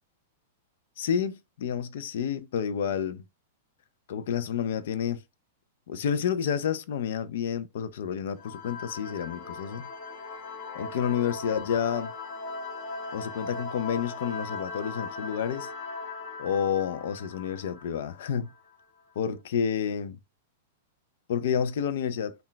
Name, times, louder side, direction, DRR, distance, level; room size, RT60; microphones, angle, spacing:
voice 1, 1.0-3.3 4.1-5.2 5.9-9.9 10.7-12.1 13.1-15.7 16.4-18.5 19.2-20.2 21.3-22.3, left 8 dB, 65° left, 0.4 m, -29 dB
sound 1, 8.4-18.7, left 4 dB, 35° left, 0.8 m, -39 dB
2.3 x 2.1 x 3.8 m
supercardioid pair, 150°, 0 cm